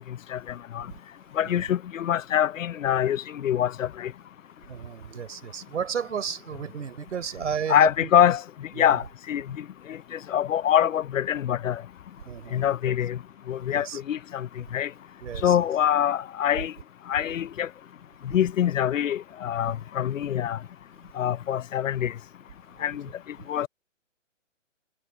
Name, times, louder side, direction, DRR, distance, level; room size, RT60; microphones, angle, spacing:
voice 1, 1.4-4.1 7.7-8.4 8.8-9.0 9.3-9.4 10.3-11.8 12.5-13.2 13.5-14.5 14.7-14.9 15.4-16.7 17.1-17.7 18.3-20.6 21.2-22.1 22.8-23.0 23.5-23.7, left 10 dB, 80° left, 0.7 m, -24 dB
voice 2, 4.7-8.1 8.7-9.0 12.2-12.9 13.7-14.0 15.2-15.6 22.8-22.9, right 7 dB, 65° right, 4.2 m, -33 dB
hypercardioid pair, 170°, 38 cm